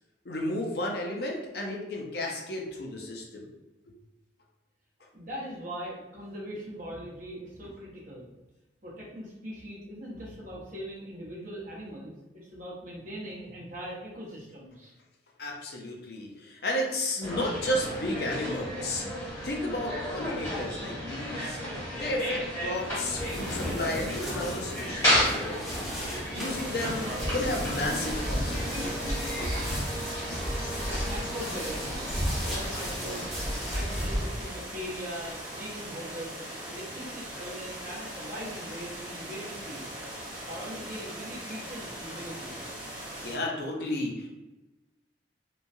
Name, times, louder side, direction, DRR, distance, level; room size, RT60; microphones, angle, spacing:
voice 1, 0.2-3.4 15.4-25.9 26.3-28.8 29.0-29.1 43.2-44.3, left 1 dB, 55° left, -1 dB, 0.5 m, -33 dB
voice 2, 5.1-8.3 8.8-14.9 28.4-29.0 30.9-32.0 32.4-33.3 33.6-36.4 36.7-39.9 40.4-42.6, equal, 45° right, -6 dB, 0.9 m, -41 dB
sound 1, 17.2-34.2, equal, 15° left, 1.2 m, -32 dB
sound 2, 22.9-35.4, equal, ahead, 0.7 m, -41 dB
sound 3, 26.3-43.4, right 1 dB, 25° right, 1.2 m, -40 dB
3.1 x 2.2 x 2.6 m, 1.1 s
head